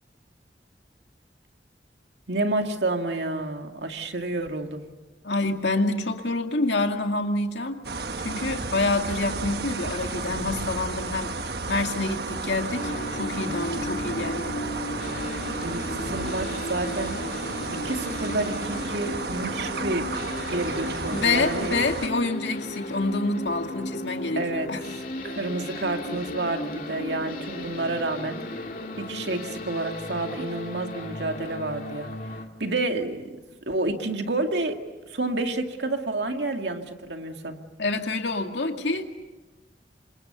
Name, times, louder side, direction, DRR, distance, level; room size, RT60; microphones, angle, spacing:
voice 1, 2.3-4.8 15.6-17.2 17.8-20.1 20.5-21.8 24.4-24.7 25.2-28.4 29.0-33.3 33.7-34.8 35.1-37.6, right 2 dB, 85° right, 4 dB, 2.3 m, -29 dB
voice 2, 5.2-7.9 8.2-14.6 21.1-24.9 37.8-39.0, left 3 dB, 90° left, 4 dB, 2.3 m, -27 dB
sound 1, 7.8-22.1, right 3 dB, 65° right, 1.3 m, -32 dB
sound 2, 12.8-32.4, left 1 dB, 50° left, 2.4 m, -35 dB
28.0 x 26.0 x 6.9 m, 1.2 s
head